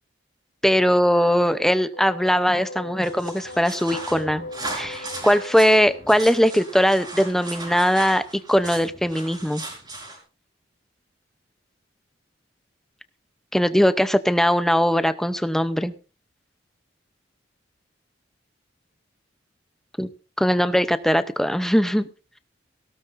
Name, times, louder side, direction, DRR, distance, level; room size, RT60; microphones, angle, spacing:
voice 1, 0.6-4.5 4.7-8.2 8.5-9.6 13.5-15.9 20.0-20.1 20.4-22.1, equal, ahead, 11 dB, 0.7 m, -20 dB
sound 1, 1.9-7.7, left 2 dB, 85° left, 2.5 m, -40 dB
sound 2, 3.0-10.2, right 2 dB, 20° right, 4.8 m, -37 dB
18.5 x 17.0 x 2.6 m, 0.34 s
head